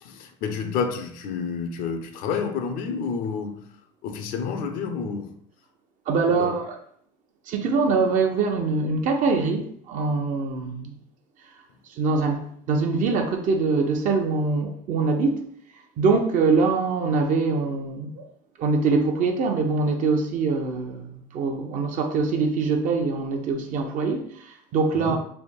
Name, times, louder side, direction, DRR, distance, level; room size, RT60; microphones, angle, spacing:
voice 1, 0.0-3.7 4.0-5.4 6.4-6.5 24.9-25.2, left 5 dB, 70° left, 0.6 m, -29 dB
voice 2, 6.1-6.8 7.5-11.0 11.9-15.5 16.0-18.3 18.6-25.2, right 4 dB, 60° right, 0.8 m, -23 dB
3.4 x 2.2 x 4.3 m
supercardioid pair, 85°, 15 cm